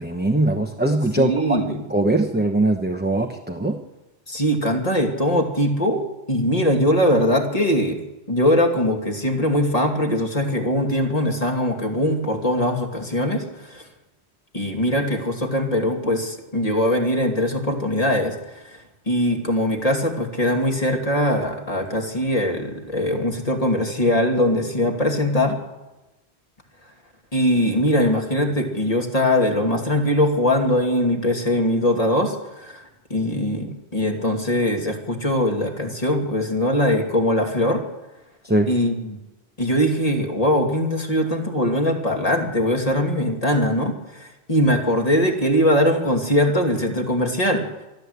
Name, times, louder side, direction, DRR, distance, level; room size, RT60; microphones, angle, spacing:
voice 1, 0.0-3.8 38.4-38.7, right 2 dB, 10° right, 4 dB, 1.0 m, -21 dB
voice 2, 1.2-1.8 4.3-8.0 8.3-13.8 14.5-25.6 27.3-37.8 38.7-39.2 39.6-47.6, left 1 dB, 35° left, 3 dB, 2.7 m, -21 dB
23.5 x 13.5 x 8.2 m, 1.0 s
omnidirectional pair, 1.1 m